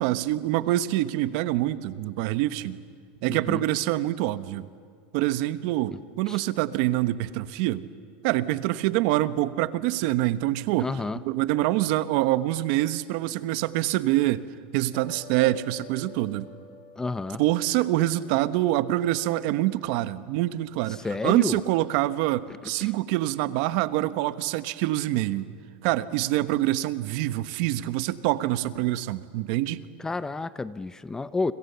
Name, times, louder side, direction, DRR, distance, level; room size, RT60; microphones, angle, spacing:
voice 1, 0.0-2.8 3.2-4.7 5.1-7.9 8.2-10.9 11.2-14.4 14.7-16.5 17.4-25.5 25.8-29.8, right 15 dB, 60° right, 13 dB, 1.2 m, -25 dB
voice 2, 3.3-3.6 5.9-6.0 6.3-6.4 10.8-11.2 17.0-17.4 20.9-21.6 22.5-22.9 30.0-31.5, left 3 dB, 10° left, 15 dB, 0.6 m, -31 dB
sound 1, 14.9-21.4, left 4 dB, 25° left, 5.2 m, -51 dB
30.0 x 26.0 x 7.0 m, 2.2 s
supercardioid pair, 140°, 5 cm